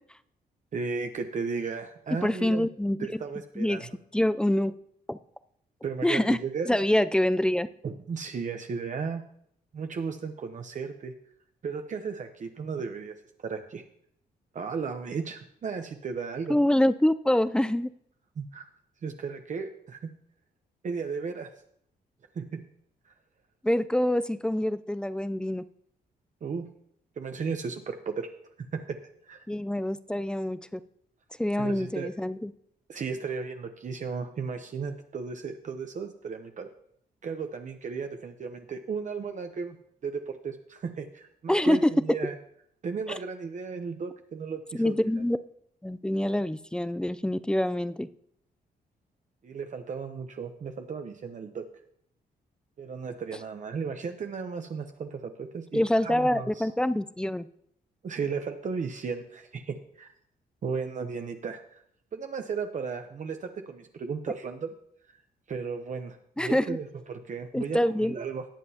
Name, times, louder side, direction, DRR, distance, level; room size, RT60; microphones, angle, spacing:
voice 1, 0.7-2.7 3.0-3.9 5.8-6.7 7.8-9.2 9.7-11.1 11.6-13.1 13.4-13.8 14.5-16.6 18.4-18.7 19.0-20.1 20.8-21.5 22.3-22.7 26.4-26.7 27.2-28.3 28.7-29.0 29.2-29.4 31.6-32.1 32.9-36.7 37.2-39.8 40.0-42.4 42.8-45.0 49.4-51.6 52.8-56.7 58.0-60.1 60.6-61.8 62.1-64.7 65.5-68.5, right 5 dB, 50° right, 6 dB, 0.8 m, -35 dB
voice 2, 2.2-3.2 3.6-4.7 5.1-5.2 6.0-6.4 6.7-7.7 16.5-17.9 23.6-25.6 29.5-30.8 31.4-32.5 41.5-41.9 43.1-43.2 44.7-45.4 45.8-48.1 55.7-57.5 66.4-66.8 67.5-68.2, left 1 dB, 5° left, 13 dB, 0.4 m, -26 dB
18.5 x 7.5 x 2.8 m, 0.69 s
cardioid pair, 105°, 17 cm